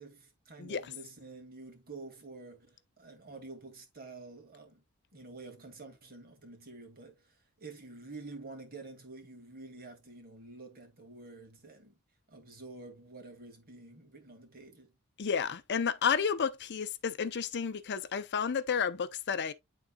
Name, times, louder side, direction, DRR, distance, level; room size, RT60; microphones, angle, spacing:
voice 1, 0.0-4.8 5.1-12.0 12.3-14.9, right 3 dB, 45° right, 2.1 m, -49 dB
voice 2, 15.2-19.5, left 6 dB, 50° left, 0.6 m, -31 dB
11.5 x 3.9 x 2.3 m
head